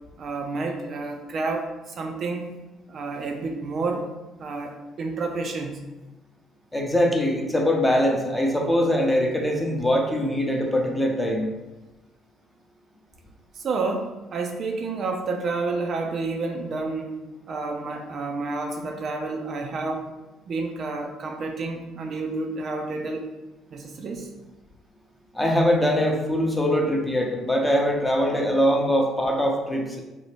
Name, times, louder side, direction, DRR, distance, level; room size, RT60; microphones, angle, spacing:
voice 1, 0.2-2.6 2.9-4.1 4.4-5.8 13.5-17.2 17.5-20.0 20.5-23.2 23.7-24.3, right 3 dB, 50° right, 2 dB, 0.3 m, -30 dB
voice 2, 6.7-11.5 25.3-30.0, equal, 10° left, 0 dB, 0.6 m, -22 dB
2.7 x 2.1 x 3.1 m, 1.1 s
hypercardioid pair, 50°, 0 cm